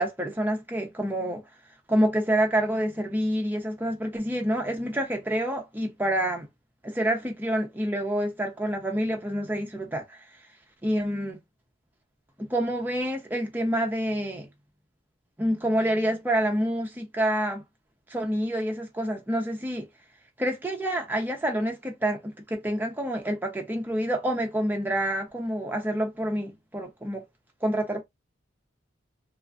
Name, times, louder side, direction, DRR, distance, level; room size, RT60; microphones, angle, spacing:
voice 1, 0.0-1.4 1.9-6.5 6.8-10.2 10.8-11.4 12.4-14.5 15.4-17.6 18.1-19.9 20.4-27.2 27.6-28.0, right 1 dB, 10° right, 0.5 m, -27 dB
2.4 x 2.4 x 2.3 m
head